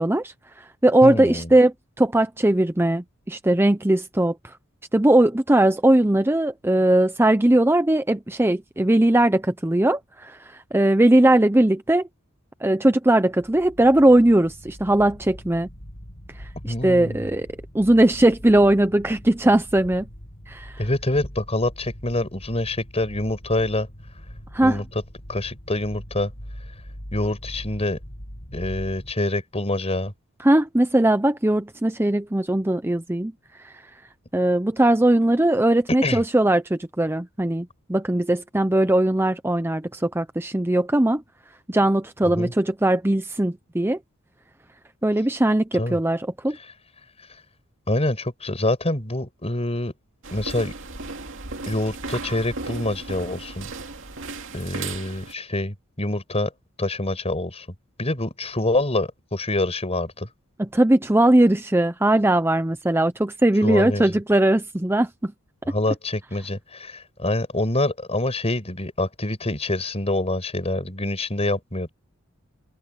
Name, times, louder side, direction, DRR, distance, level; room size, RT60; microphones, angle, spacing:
voice 1, 0.0-4.6 4.9-12.1 12.6-15.7 16.4-17.5 17.7-20.1 20.5-20.9 24.5-24.8 30.4-33.3 33.6-33.8 34.3-41.2 41.7-44.0 45.0-46.6 60.6-65.3, right 1 dB, 10° right, 0.7 m, -19 dB
voice 2, 1.0-1.5 16.6-17.3 20.8-23.9 24.6-24.8 25.3-26.3 27.1-28.0 28.5-30.1 36.0-36.2 42.2-42.5 45.8-46.0 47.9-49.9 50.3-50.7 51.7-53.7 54.5-56.5 56.8-57.7 58.0-60.3 63.6-64.1 65.6-71.9, left 1 dB, 30° left, 6.1 m, -26 dB
sound 1, 13.3-29.1, equal, 45° left, 7.1 m, -41 dB
sound 2, 50.2-55.3, right 3 dB, 65° right, 2.5 m, -35 dB
open air
head